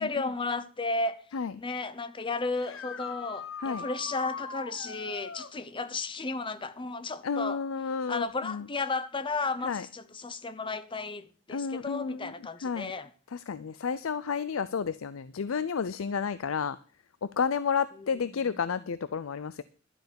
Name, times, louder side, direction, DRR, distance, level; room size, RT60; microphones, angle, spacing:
voice 1, 0.0-1.2 1.6-7.6 8.1-13.1, left 3 dB, 25° left, 0.7 m, -33 dB
voice 2, 1.3-1.6 3.6-3.9 7.2-8.7 9.6-9.9 11.5-12.9 13.3-16.8 17.2-19.6, left 6 dB, 85° left, 0.5 m, -31 dB
sound 1, 2.6-5.5 8.9-9.0 11.0-11.1 17.3-17.4, left 5 dB, 70° left, 1.1 m, -41 dB
12.0 x 8.0 x 6.9 m
head